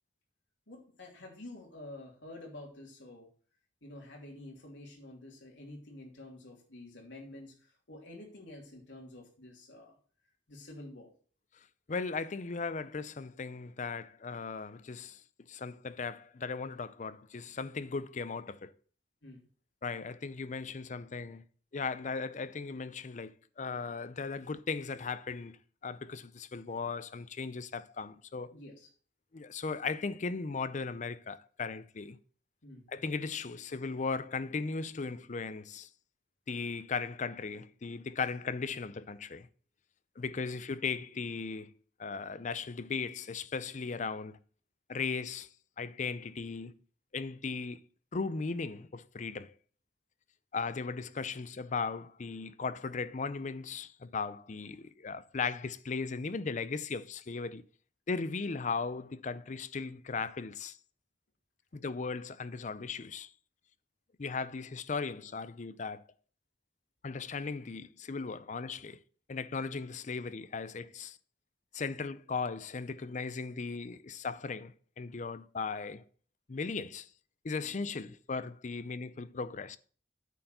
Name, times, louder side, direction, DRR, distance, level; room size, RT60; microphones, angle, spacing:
voice 1, 0.7-3.3 3.8-10.0 10.5-11.1 19.2-19.5 28.5-28.9 32.6-32.9 77.6-77.7, left 1 dB, 85° left, 2.9 m, -49 dB
voice 2, 11.9-15.2 15.5-18.7 19.8-21.4 21.7-25.6 25.8-28.5 29.3-32.2 32.9-35.9 36.5-39.5 40.2-41.7 42.0-44.4 44.9-45.5 45.8-46.8 47.1-47.8 48.1-49.5 50.5-57.6 58.1-60.8 61.7-63.3 64.2-66.0 67.0-69.0 69.3-71.2 71.7-76.0 76.5-77.1 77.4-79.8, left 4 dB, 40° left, 0.5 m, -37 dB
9.1 x 4.7 x 6.6 m
head